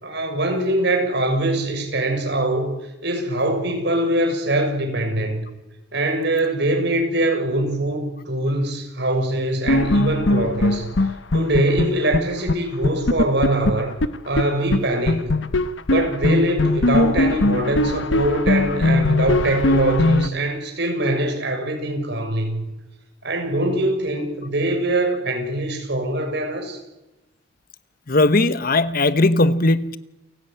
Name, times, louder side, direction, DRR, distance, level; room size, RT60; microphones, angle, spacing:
voice 1, 0.0-2.7 3.0-5.5 5.9-10.9 11.3-13.9 14.2-15.4 15.9-22.6 23.2-26.8, right 1 dB, 65° right, 4 dB, 6.6 m, -22 dB
sound 1, 9.7-12.2 12.5-12.6 12.8-14.4 14.7-14.8 15.1-20.3, left 2 dB, 80° left, 1.1 m, -20 dB
voice 2, 28.1-30.0, left 2 dB, 50° left, 14 dB, 1.1 m, -18 dB
29.0 x 16.5 x 9.2 m, 1.0 s
head